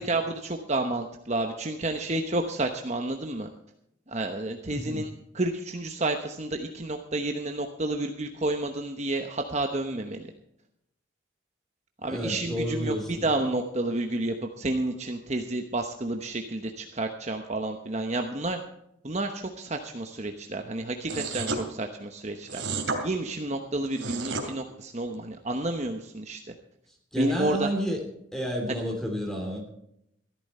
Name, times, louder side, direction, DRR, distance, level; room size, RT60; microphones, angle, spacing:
voice 1, 0.0-3.5 4.1-10.3 12.0-18.6 19.0-26.4 27.2-27.7 28.7-28.8, right 2 dB, 35° right, 4 dB, 1.0 m, -30 dB
voice 2, 4.7-5.0 12.0-13.2 27.1-28.0 28.3-29.7, equal, ahead, 3 dB, 3.0 m, -30 dB
sound 1, 21.1-21.6 22.5-23.0 23.8-24.5, right 3 dB, 70° right, 2.8 m, -31 dB
14.5 x 13.0 x 4.3 m, 0.77 s
head